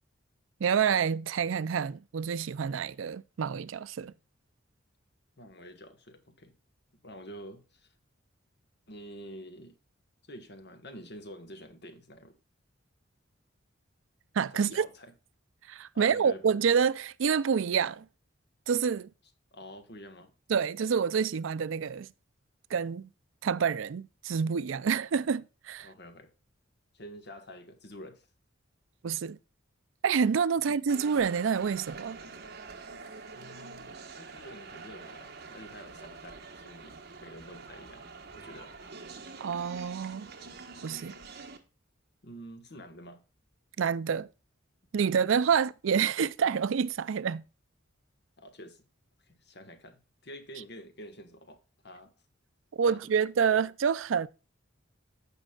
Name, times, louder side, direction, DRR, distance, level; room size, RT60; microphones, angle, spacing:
voice 1, 0.6-4.1 14.3-14.9 15.7-18.1 18.7-19.1 20.5-22.1 22.7-23.1 23.4-25.9 29.0-29.4 30.0-32.2 39.4-40.3 40.8-41.1 43.8-44.3 44.9-47.4 52.7-54.3, right 6 dB, 75° right, 0.4 m, -28 dB
voice 2, 5.4-6.5 7.0-7.9 8.9-9.8 10.3-12.4 14.5-15.1 15.9-16.4 19.5-20.3 21.2-21.3 25.8-26.3 26.9-28.3 30.6-30.8 33.3-38.7 42.2-43.2 45.5-45.6 48.4-48.8 49.2-52.1 52.9-53.2 53.5-53.6, equal, 55° left, 1.5 m, -48 dB
sound 1, 30.9-41.6, right 4 dB, 55° right, 1.3 m, -46 dB
15.0 x 5.3 x 2.4 m
head